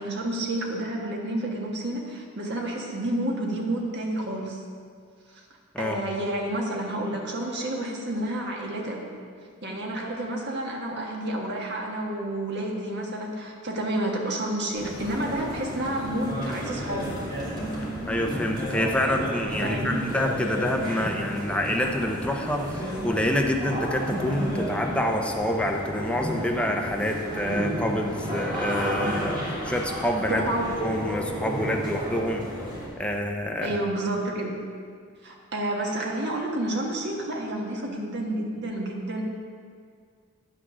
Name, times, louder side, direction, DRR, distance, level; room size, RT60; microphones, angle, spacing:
voice 1, 0.0-4.6 5.3-5.4 5.8-9.0 9.6-17.2 19.6-20.0 30.3-30.7 33.6-34.6 35.2-39.2, right 1 dB, 50° right, -1 dB, 1.5 m, -30 dB
sound 1, 14.7-32.9, equal, 20° right, 2.3 m, -32 dB
voice 2, 18.1-30.4 30.8-32.4 33.0-33.8, left 1 dB, 5° left, 2 dB, 0.6 m, -27 dB
9.8 x 6.1 x 6.2 m, 2.1 s
head